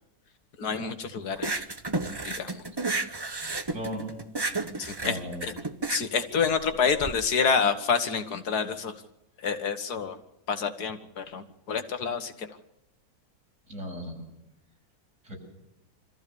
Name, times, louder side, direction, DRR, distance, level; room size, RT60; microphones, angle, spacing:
voice 1, 0.6-1.5 2.2-2.6 4.8-5.2 5.4-5.5 5.9-8.9 9.4-10.2 10.5-12.6, left 6 dB, 90° left, 8 dB, 2.1 m, -28 dB
sound 1, 1.4-7.1, right 3 dB, 20° right, 0.8 m, -32 dB
voice 2, 3.7-4.1 5.0-5.5 13.7-14.2 15.2-15.3, equal, 55° right, -1 dB, 7.8 m, -36 dB
25.5 x 14.5 x 7.0 m, 0.87 s
omnidirectional pair, 1.6 m